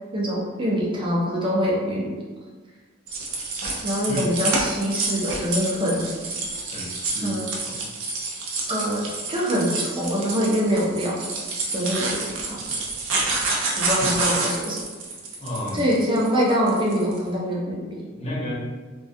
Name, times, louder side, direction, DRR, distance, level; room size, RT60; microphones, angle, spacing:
voice 1, 0.1-2.2 3.8-6.1 7.2-7.5 8.7-11.2 11.7-12.6 13.8-14.8 15.7-18.1, equal, 25° right, -5 dB, 0.6 m, -24 dB
sound 1, 3.1-17.2, right 3 dB, 85° right, 0.5 m, -28 dB
voice 2, 6.7-7.4 7.7-7.8 15.4-15.9 18.2-18.5, left 1 dB, 30° left, -7 dB, 0.7 m, -31 dB
2.3 x 2.2 x 2.6 m, 1.4 s
head